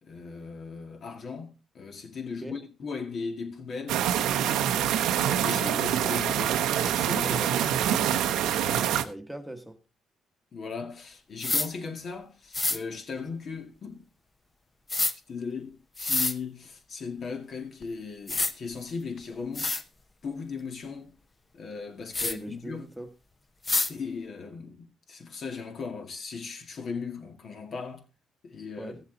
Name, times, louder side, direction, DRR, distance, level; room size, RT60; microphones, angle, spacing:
voice 1, 0.0-4.1 4.3-4.7 5.2-7.5 8.3-8.6 10.5-14.0 15.3-19.7 20.2-21.1 21.5-22.9 23.9-28.1 28.4-29.0, left 5 dB, 55° left, 2.1 m, -38 dB
sound 1, 3.9-9.0, right 10 dB, 90° right, 0.9 m, -25 dB
voice 2, 8.4-9.8 22.2-23.1 28.8-29.0, right 1 dB, 5° right, 1.3 m, -40 dB
sound 2, 11.4-11.7 12.5-12.8 14.9-15.1 16.0-16.3 17.8-17.9 18.3-18.5 19.2-19.3 19.6-19.8 22.1-22.3 23.7-23.9, left 3 dB, 25° left, 0.9 m, -26 dB
15.5 x 7.2 x 3.9 m
cardioid pair, 90°, 0 cm